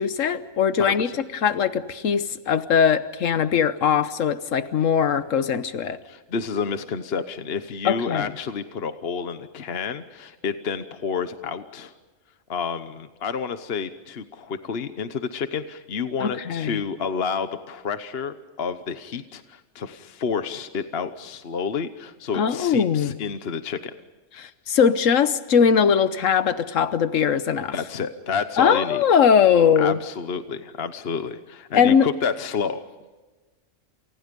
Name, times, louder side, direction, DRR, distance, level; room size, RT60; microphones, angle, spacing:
voice 1, 0.0-6.0 7.8-8.3 16.2-16.8 22.3-23.2 24.4-27.7 28.6-30.0 31.7-32.1, left 7 dB, 90° left, 12 dB, 1.4 m, -20 dB
voice 2, 0.8-1.2 6.0-11.9 12.5-23.9 27.7-29.0 29.8-32.8, left 6 dB, 55° left, 10 dB, 1.2 m, -30 dB
29.0 x 28.5 x 5.3 m, 1.2 s
omnidirectional pair, 1.3 m